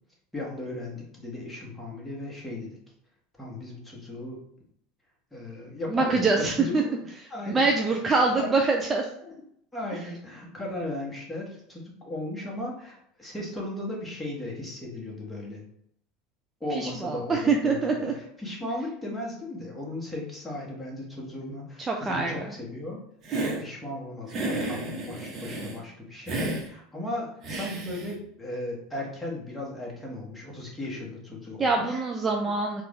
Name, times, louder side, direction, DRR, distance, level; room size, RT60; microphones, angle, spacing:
voice 1, 0.3-2.8 3.4-4.4 5.3-6.9 7.3-7.9 8.4-8.5 9.7-15.6 16.6-23.0 23.3-32.0, left 1 dB, 5° left, -3 dB, 1.5 m, -36 dB
voice 2, 5.9-6.8 7.2-9.1 16.7-18.1 21.8-22.3 31.6-32.8, right 3 dB, 20° right, 1 dB, 0.5 m, -25 dB
Hiss, 23.2-23.6 24.3-25.8 26.3-26.6 27.4-28.1, right 2 dB, 40° right, 1.1 m, -31 dB
4.2 x 2.5 x 3.6 m, 0.70 s
figure-of-eight pair, 75°, 0 cm